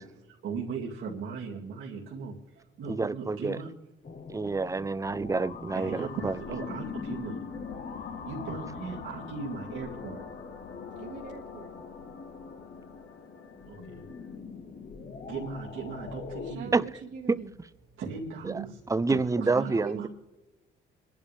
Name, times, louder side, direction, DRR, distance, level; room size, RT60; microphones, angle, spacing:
voice 1, 0.0-3.7 5.7-7.4 8.3-10.3 13.7-14.0 15.2-16.7 18.0-18.8 19.1-20.1, right 5 dB, 80° right, 2.4 m, -38 dB
voice 2, 2.8-3.6 4.3-6.3 16.7-16.8 18.5-18.6 18.9-20.0, right 3 dB, 15° right, 0.6 m, -28 dB
sound 1, 4.0-16.6, left 5 dB, 45° left, 1.0 m, -42 dB
sound 2, 6.0-14.4, left 7 dB, 85° left, 2.0 m, -49 dB
voice 3, 11.0-11.7 16.4-17.5 19.4-19.8, right 5 dB, 60° right, 1.8 m, -42 dB
27.0 x 11.0 x 3.4 m
cardioid pair, 90°, 20 cm